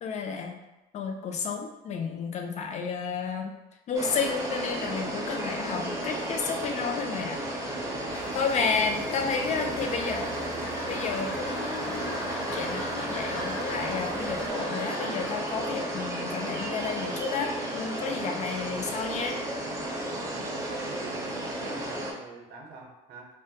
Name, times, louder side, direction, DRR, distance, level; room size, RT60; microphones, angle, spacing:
voice 1, 0.0-0.6 0.9-3.6 3.9-7.4 7.9-8.0 8.3-10.3 10.9-19.4, left 5 dB, 45° left, 4 dB, 0.4 m, -31 dB
sound 1, 3.9-22.1, right 1 dB, 20° right, 0.4 m, -33 dB
sound 2, 7.5-19.2, left 1 dB, 85° left, 0.6 m, -41 dB
Engine, 8.1-14.5, left 1 dB, 60° left, 1.0 m, -49 dB
voice 2, 8.7-10.0 20.4-23.3, right 3 dB, 65° right, 0 dB, 0.6 m, -46 dB
2.2 x 2.1 x 2.7 m, 0.99 s
cardioid pair, 110°, 17 cm